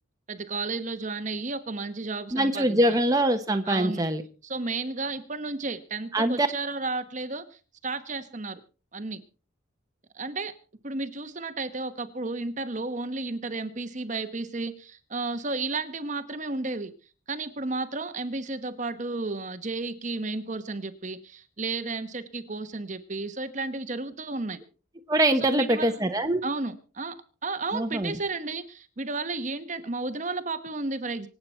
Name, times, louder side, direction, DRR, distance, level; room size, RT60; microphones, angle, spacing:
voice 1, 0.3-3.0 3.6-4.1 4.4-8.6 8.9-9.2 10.1-10.5 10.8-16.9 17.3-24.6 25.4-25.9 26.4-27.2 27.4-31.3, right 3 dB, 35° right, 10 dB, 1.1 m, -33 dB
voice 2, 2.3-4.2 6.1-6.5 25.1-26.4 27.7-28.1, right 1 dB, 15° right, 5 dB, 1.1 m, -23 dB
25.5 x 8.7 x 4.4 m, 0.36 s
head